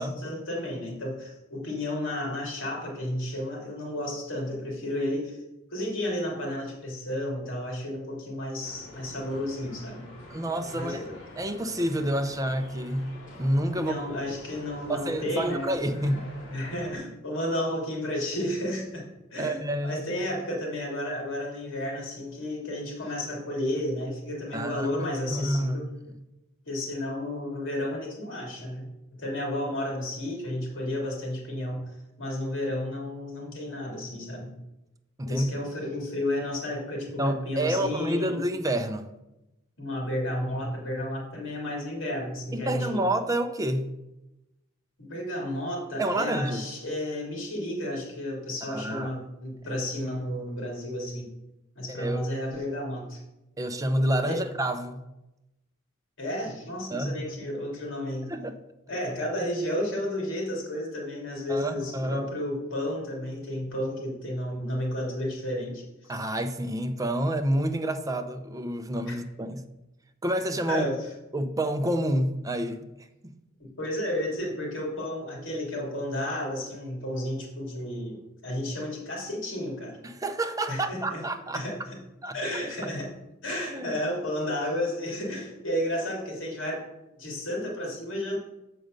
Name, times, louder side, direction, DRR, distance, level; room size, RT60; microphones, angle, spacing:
voice 1, 0.0-5.4 5.7-10.1 10.7-11.1 13.7-15.8 16.5-25.9 26.7-34.6 35.3-38.5 39.8-43.0 45.0-51.3 51.7-53.2 54.3-54.4 56.2-58.3 58.9-66.2 69.0-69.2 70.7-71.0 73.6-80.0 80.7-81.2 81.5-82.0 82.3-83.1 83.4-86.9 87.2-88.4, left 1 dB, 65° left, 2.9 m, -32 dB
sound 1, 8.6-17.0, left 1 dB, 40° left, 2.7 m, -46 dB
voice 2, 10.3-11.0 11.4-13.1 13.4-14.0 14.9-16.2 19.4-20.0 24.5-25.8 35.2-35.5 37.2-39.1 42.5-43.9 46.0-46.7 48.6-49.1 51.9-52.2 53.6-55.0 56.9-57.4 58.3-58.6 61.5-62.3 66.1-69.6 70.2-70.9 71.3-73.3 80.0-81.7 82.2-82.3 83.7-84.0, right 1 dB, 15° right, 0.6 m, -28 dB
7.6 x 5.1 x 6.6 m
head